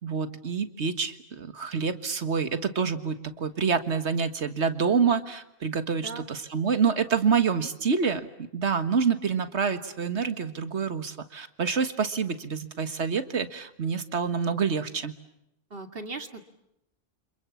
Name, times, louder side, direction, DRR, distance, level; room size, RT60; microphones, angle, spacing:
voice 1, 0.0-15.1, right 6 dB, 80° right, 10 dB, 1.8 m, -27 dB
voice 2, 5.9-6.2 15.7-16.4, right 3 dB, 55° right, 7 dB, 2.3 m, -38 dB
29.5 x 27.0 x 7.2 m, 0.80 s
omnidirectional pair, 1.1 m